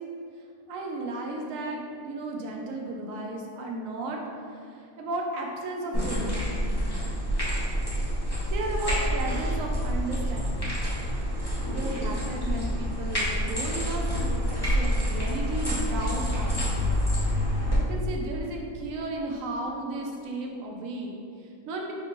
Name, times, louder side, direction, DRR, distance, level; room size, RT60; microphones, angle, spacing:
voice 1, 0.7-4.2 4.5-6.4 8.5-10.7 11.7-16.9 17.8-21.9, right 2 dB, 80° right, 0 dB, 1.0 m, -34 dB
sound 1, 5.9-17.8, equal, 20° left, 0.7 m, -27 dB
5.2 x 2.9 x 2.5 m, 2.4 s
omnidirectional pair, 1.4 m